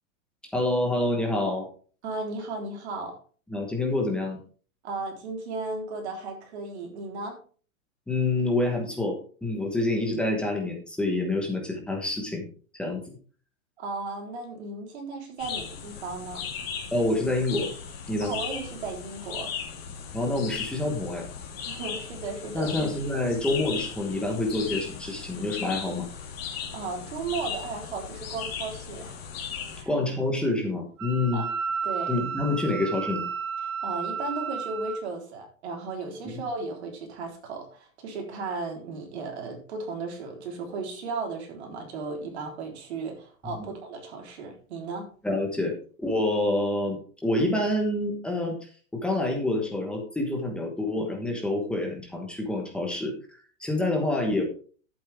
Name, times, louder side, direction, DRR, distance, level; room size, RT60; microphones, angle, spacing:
voice 1, 0.5-1.7 3.5-4.4 8.1-12.5 12.7-13.2 16.9-17.7 18.1-18.3 20.1-21.3 22.5-26.1 29.9-31.5 32.1-33.3 43.6-43.7 45.2-54.4, left 2 dB, ahead, 1 dB, 1.1 m, -27 dB
voice 2, 2.0-3.1 4.8-7.4 13.8-16.4 18.2-19.5 21.6-22.7 26.5-29.2 29.7-29.9 31.3-31.5 31.8-32.2 33.6-45.1, right 3 dB, 50° right, 2 dB, 3.9 m, -35 dB
sound 1, 15.4-29.8, left 7 dB, 45° left, 3.2 m, -37 dB
Wind instrument woodwind instrument, 31.0-35.0, right 6 dB, 20° right, 0.4 m, -32 dB
11.0 x 8.7 x 3.5 m, 0.40 s
supercardioid pair, 175°, 42 cm